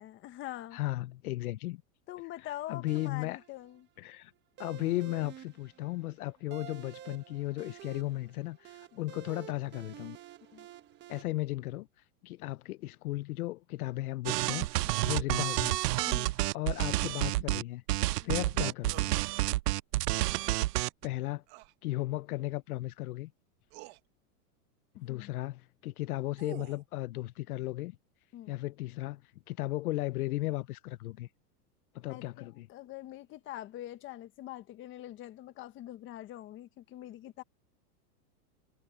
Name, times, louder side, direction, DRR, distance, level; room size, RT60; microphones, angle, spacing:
voice 1, 0.0-0.8 2.1-3.9 8.9-9.0 10.4-10.7 14.8-15.1 16.1-16.3 18.2-18.4 25.0-25.3 28.3-28.5 32.1-37.4, left 14 dB, 25° left, 1.3 m, -44 dB
voice 2, 0.7-1.8 2.4-3.4 4.0-4.3 4.6-10.2 11.1-11.9 12.2-14.7 15.0-15.8 16.5-17.8 18.2-19.1 21.0-21.4 21.8-23.3 25.0-28.0 28.5-31.3 31.9-32.7, left 17 dB, 70° left, 0.9 m, -35 dB
sound 1, 2.9-11.2, right 12 dB, 25° right, 1.5 m, -50 dB
sound 2, 14.3-17.6 17.9-21.1, right 18 dB, 90° right, 0.6 m, -29 dB
sound 3, 18.9-19.2 21.5-21.7 23.1-23.2 23.7-24.0 26.0-26.9, right 22 dB, 45° right, 1.9 m, -48 dB
supercardioid pair, 155°, 46 cm